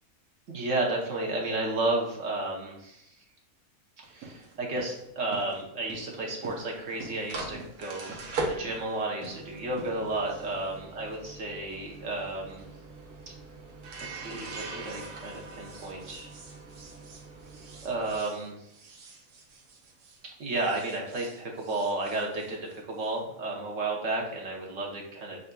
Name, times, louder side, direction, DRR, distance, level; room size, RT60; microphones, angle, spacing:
voice 1, 0.5-3.1 4.1-12.7 14.1-16.3 17.8-18.7 20.4-25.4, right 2 dB, 60° right, -1 dB, 1.2 m, -32 dB
sound 1, 4.0-20.2 20.5-23.1, right 3 dB, 85° right, 1.2 m, -42 dB
6.4 x 2.5 x 2.2 m, 0.77 s
omnidirectional pair, 1.5 m